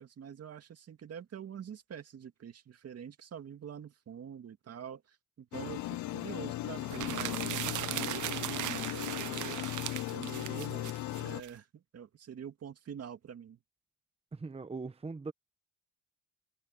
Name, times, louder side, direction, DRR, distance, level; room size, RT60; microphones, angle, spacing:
voice 1, 0.0-9.7 10.1-13.6, right 8 dB, 55° right, 2.1 m, -46 dB
sound 1, 5.5-11.4, left 16 dB, 75° left, 0.5 m, -37 dB
sound 2, 6.8-11.5, right 14 dB, 75° right, 1.0 m, -38 dB
voice 2, 14.3-15.3, right 4 dB, 20° right, 1.0 m, -40 dB
cardioid pair, 90°, 30 cm